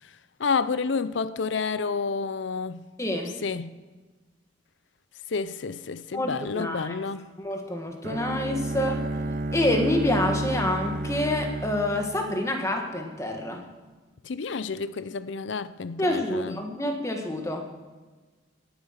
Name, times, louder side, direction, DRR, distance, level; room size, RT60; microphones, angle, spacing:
voice 1, 0.4-2.8 3.4-3.7 5.3-7.3 14.2-16.6, left 4 dB, 75° left, 0.6 m, -29 dB
voice 2, 3.0-3.3 6.1-6.9 7.4-9.1 9.5-13.6 16.0-17.6, left 1 dB, 15° left, 1.5 m, -27 dB
Bowed string instrument, 8.0-13.0, right 2 dB, 45° right, 0.5 m, -31 dB
18.5 x 8.8 x 5.8 m
head